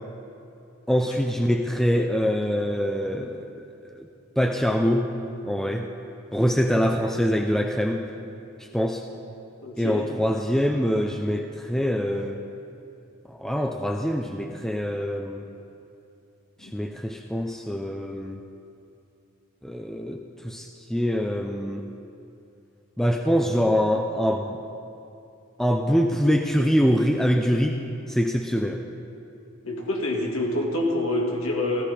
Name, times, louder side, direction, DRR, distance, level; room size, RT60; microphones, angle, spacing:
voice 1, 0.9-3.5 4.4-5.1 5.4-5.9 6.3-8.1 8.7-9.0 9.8-12.4 13.3-15.4 16.7-18.4 19.6-21.9 23.0-24.5 25.6-27.8 28.1-28.8, equal, ahead, 2 dB, 0.5 m, -24 dB
voice 2, 9.6-10.1 16.6-16.7 29.6-31.8, left 1 dB, 85° left, -1 dB, 2.0 m, -26 dB
16.0 x 14.0 x 5.0 m, 2.8 s
head